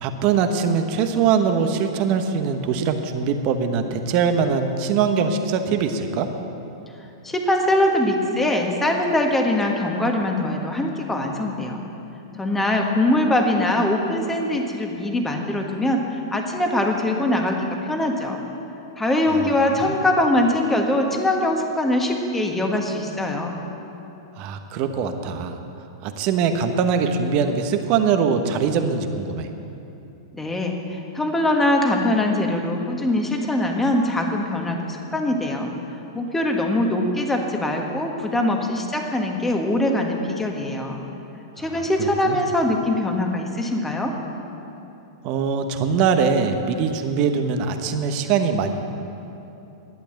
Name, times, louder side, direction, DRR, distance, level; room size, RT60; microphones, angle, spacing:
voice 1, 0.0-6.3 19.3-20.0 24.4-25.6 26.0-29.5 41.7-42.4 45.2-48.7, right 6 dB, 45° right, 7 dB, 1.0 m, -22 dB
voice 2, 7.2-11.8 12.4-18.4 19.0-23.6 30.4-35.7 36.1-41.0 41.6-44.1, left 1 dB, 10° left, 2 dB, 1.5 m, -22 dB
12.0 x 8.4 x 7.8 m, 2.9 s
hypercardioid pair, 110°, 2 cm